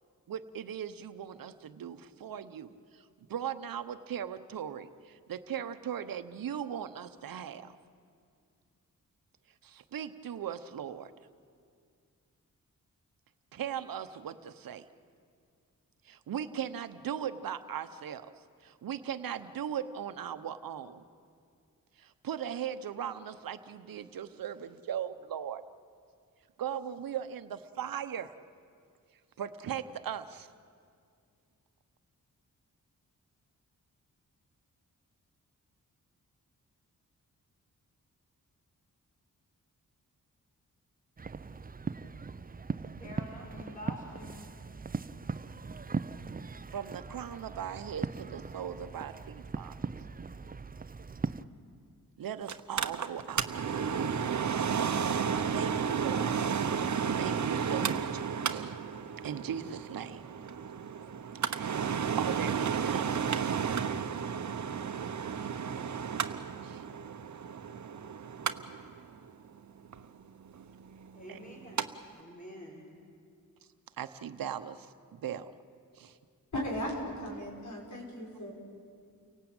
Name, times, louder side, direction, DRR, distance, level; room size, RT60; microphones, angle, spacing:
voice 1, 0.3-7.8 9.6-11.1 13.5-14.8 16.0-18.3 18.6-21.0 22.0-25.6 26.6-28.3 29.4-30.5 46.7-49.8 52.2-53.5 55.5-56.4 57.2-58.8 59.2-60.2 61.4-61.9 62.2-63.4 66.6-66.8 71.3-71.4 74.0-75.5 76.0-76.2, right 9 dB, 85° right, 10 dB, 1.0 m, -38 dB
sound 1, 41.2-51.4, right 4 dB, 25° right, 0.7 m, -39 dB
voice 2, 43.0-44.5 71.1-71.9 72.1-72.8, left 1 dB, 25° left, -1 dB, 5.7 m, -47 dB
Mechanical fan, 52.5-71.9 72.2-72.3, right 7 dB, 60° right, 1.0 m, -33 dB
voice 3, 76.5-78.5, equal, 60° left, -1 dB, 6.3 m, -36 dB
29.5 x 18.0 x 8.9 m, 2.3 s
cardioid pair, 65°, 34 cm